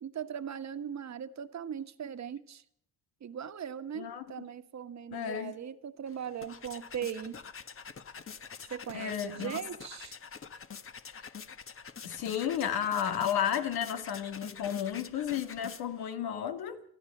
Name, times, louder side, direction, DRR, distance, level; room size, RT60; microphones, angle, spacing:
voice 1, 0.0-2.6 3.2-7.4 8.7-10.1, right 8 dB, 50° right, 1.4 m, -39 dB
voice 2, 4.0-4.5 5.1-5.6 8.9-9.6 11.2-11.3 12.0-16.8, left 9 dB, 90° left, 2.1 m, -33 dB
sound 1, 6.1-16.1, left 6 dB, 35° left, 1.3 m, -46 dB
24.0 x 14.5 x 7.3 m
cardioid pair, 90°, 36 cm